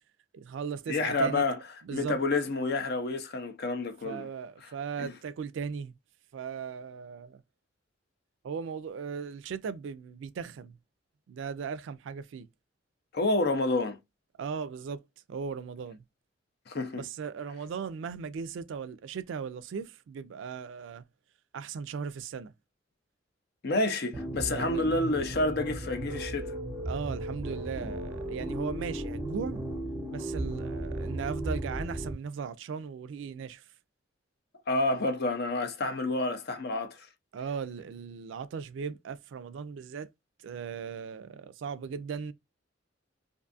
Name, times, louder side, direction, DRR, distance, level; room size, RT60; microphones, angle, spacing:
voice 1, 0.3-1.4 1.8-2.2 4.0-5.9 6.3-7.4 8.4-10.8 11.3-12.5 14.4-15.0 15.3-16.0 16.9-21.0 21.5-22.5 24.3-24.9 26.9-29.7 30.1-33.6 37.3-40.1 40.4-42.3, right 6 dB, 65° right, 0.3 m, -37 dB
voice 2, 0.9-1.6 1.9-4.3 5.0-5.1 13.1-14.0 16.7-17.0 23.6-26.5 34.7-37.1, left 2 dB, 55° left, 0.5 m, -29 dB
sound 1, 24.1-32.1, right 1 dB, 15° right, 0.6 m, -35 dB
2.5 x 2.4 x 2.4 m
head